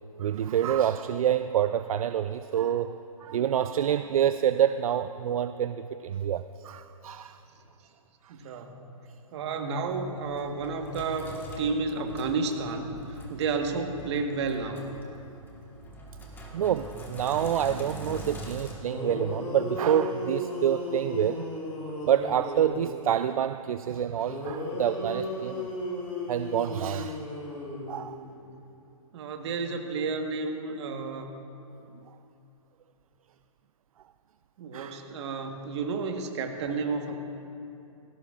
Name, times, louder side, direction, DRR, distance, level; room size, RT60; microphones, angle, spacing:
voice 1, 0.2-7.4 8.2-8.6 16.5-21.5 22.0-25.7 26.3-27.2 27.9-28.3 34.7-35.0, right 10 dB, 70° right, 11 dB, 0.4 m, -27 dB
voice 2, 8.3-8.8 9.3-14.9 29.1-31.3 34.6-37.1, right 4 dB, 50° right, 4 dB, 1.4 m, -31 dB
Sink (filling or washing), 9.9-18.7, left 1 dB, 10° left, 1.5 m, -43 dB
sound 1, 18.9-23.0 24.3-28.3, left 1 dB, 30° left, 3.2 m, -35 dB
18.0 x 17.0 x 2.5 m, 2.8 s
hypercardioid pair, 140°, 19 cm